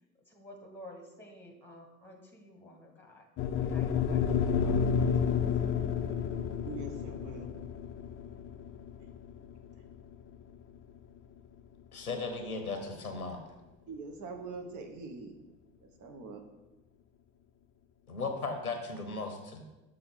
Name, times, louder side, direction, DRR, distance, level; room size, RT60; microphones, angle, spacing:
voice 1, 0.2-3.3 3.6-5.4, left 1 dB, 5° left, 3 dB, 1.3 m, -52 dB
sound 1, 3.4-11.6, left 7 dB, 30° left, 0.6 m, -31 dB
voice 2, 6.7-7.5 13.9-15.3 15.8-16.4, right 3 dB, 45° right, 4 dB, 1.2 m, -43 dB
voice 3, 11.9-13.4 18.1-19.6, left 3 dB, 90° left, 5 dB, 0.9 m, -36 dB
6.7 x 3.7 x 5.7 m, 1.1 s
figure-of-eight pair, 70°, 42 cm